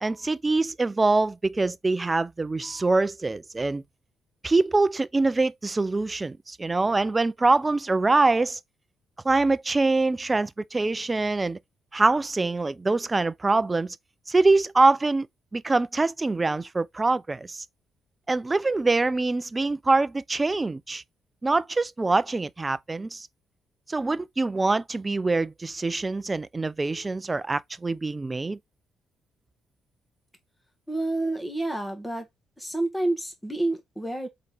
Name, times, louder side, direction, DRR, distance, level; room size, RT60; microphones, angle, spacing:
voice 1, 0.0-3.8 4.4-8.6 9.2-11.6 11.9-14.0 14.3-15.3 15.5-17.6 18.3-21.0 21.4-23.3 23.9-28.6, right 3 dB, 20° right, 0.4 m, -24 dB
voice 2, 30.9-32.3 32.6-34.3, right 2 dB, 5° left, 1.5 m, -29 dB
4.2 x 3.9 x 3.3 m
cardioid pair, 90°, 0 cm